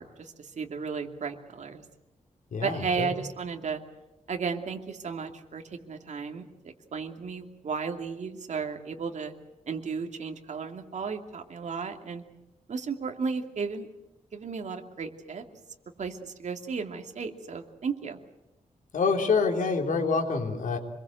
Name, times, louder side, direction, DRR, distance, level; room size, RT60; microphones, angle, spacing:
voice 1, 0.0-1.8 2.6-3.8 4.3-9.3 9.7-12.2 12.7-13.9 14.3-15.4 16.0-18.2, right 5 dB, 60° right, 4 dB, 2.6 m, -34 dB
voice 2, 2.5-3.1 18.9-20.8, left 4 dB, 80° left, 3 dB, 3.5 m, -26 dB
26.5 x 22.0 x 7.9 m, 0.99 s
wide cardioid pair, 160°, 13 cm